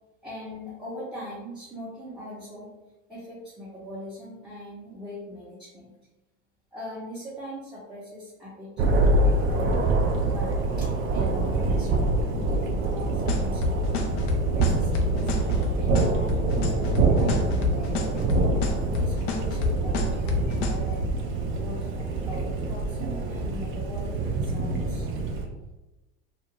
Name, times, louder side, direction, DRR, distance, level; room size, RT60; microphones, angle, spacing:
voice 1, 0.2-2.7 3.1-6.0 6.7-10.6 11.1-14.0 14.5-15.3 15.8-18.2 18.9-21.1 21.5-25.1, left 1 dB, ahead, -10 dB, 0.8 m, -41 dB
Thunder, 8.8-25.4, right 2 dB, 35° right, 0.5 m, -25 dB
sound 1, 13.0-20.7, left 6 dB, 55° left, 0.6 m, -28 dB
2.5 x 2.3 x 2.9 m, 1.0 s
supercardioid pair, 110°, 35 cm